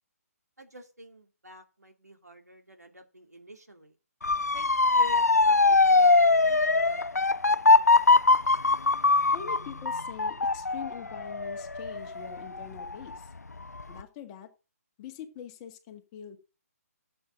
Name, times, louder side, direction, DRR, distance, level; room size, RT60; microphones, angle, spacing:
voice 1, 0.6-3.9 4.5-7.1, left 1 dB, 85° right, 4 dB, 2.6 m, -48 dB
Motor vehicle (road) / Siren, 4.2-13.1 13.6-14.0, left 3 dB, 80° left, 0.7 m, -22 dB
voice 2, 8.8-13.3 13.9-14.5 15.0-16.4, left 8 dB, 25° left, 5 dB, 1.9 m, -44 dB
12.5 x 7.8 x 3.8 m, 0.31 s
figure-of-eight pair, 140°, 9 cm